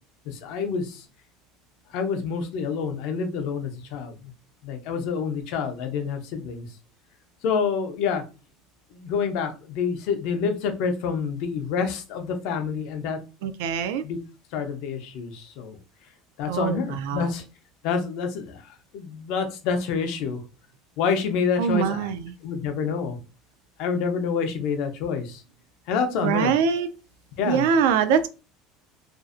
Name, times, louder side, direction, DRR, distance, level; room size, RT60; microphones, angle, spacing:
voice 1, 0.3-1.1 1.9-4.1 4.6-6.7 7.4-8.2 8.9-13.2 14.0-14.2 14.5-15.8 16.4-17.4 17.8-20.4 21.0-22.1 22.4-23.2 23.8-25.4 25.9-26.5 27.4-27.7, left 6 dB, 60° left, 0.5 m, -27 dB
voice 2, 13.4-14.0 16.5-16.8 17.0-17.3 21.6-22.3 26.2-26.9 27.5-28.3, right 7 dB, 80° right, 0.3 m, -23 dB
2.5 x 2.0 x 2.4 m
cardioid pair, 155°, 0 cm